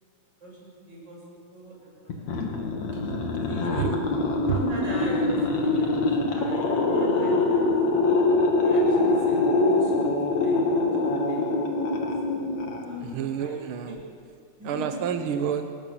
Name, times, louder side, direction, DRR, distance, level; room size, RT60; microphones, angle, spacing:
voice 1, 0.4-1.2 1.5-2.3 3.5-3.9 4.4-7.7 8.6-11.9 12.8-13.6 14.6-15.0, right 1 dB, 35° right, -3 dB, 8.4 m, -40 dB
sound 1, 2.1-13.2, left 2 dB, 65° left, 3.6 m, -24 dB
voice 2, 13.0-14.0 14.6-15.6, right 8 dB, 65° right, 7 dB, 1.4 m, -29 dB
27.0 x 20.0 x 7.1 m, 2.3 s
omnidirectional pair, 3.5 m